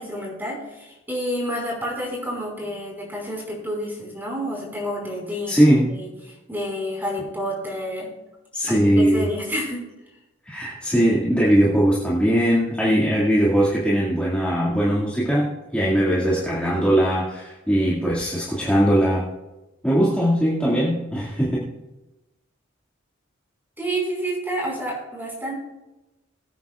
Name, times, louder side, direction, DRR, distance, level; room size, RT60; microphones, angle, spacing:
voice 1, 0.0-5.6 5.9-8.1 8.6-9.8 23.8-25.5, equal, 10° right, -2 dB, 5.0 m, -29 dB
voice 2, 5.5-5.9 8.5-9.3 10.4-15.5 15.7-19.2 19.8-21.7, equal, 5° left, -7 dB, 2.1 m, -20 dB
22.0 x 9.4 x 2.4 m, 1.0 s
head